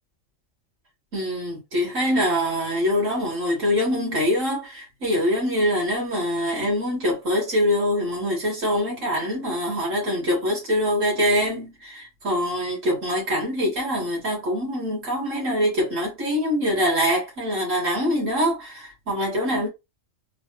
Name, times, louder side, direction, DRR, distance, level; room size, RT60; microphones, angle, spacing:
voice 1, 1.1-19.7, equal, 85° right, 2.3 m, -24 dB
4.0 x 2.3 x 3.1 m
omnidirectional pair, 1.3 m